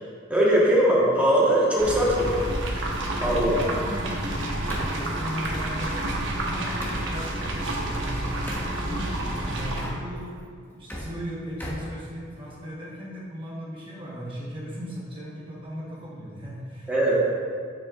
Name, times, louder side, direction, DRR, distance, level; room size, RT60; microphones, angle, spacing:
voice 1, 0.3-2.4 3.2-3.6 16.9-17.2, right 1 dB, 5° right, -7 dB, 1.4 m, -20 dB
sound 1, 1.8-7.1 8.5-8.7 9.6-10.4 10.7-12.7, equal, 10° left, 1.2 m, -41 dB
sound 2, 1.8-9.8, right 1 dB, 65° right, 1.2 m, -29 dB
voice 2, 3.4-8.3 8.7-17.2, equal, 25° right, -6 dB, 1.2 m, -37 dB
9.5 x 7.4 x 2.5 m, 2.1 s
head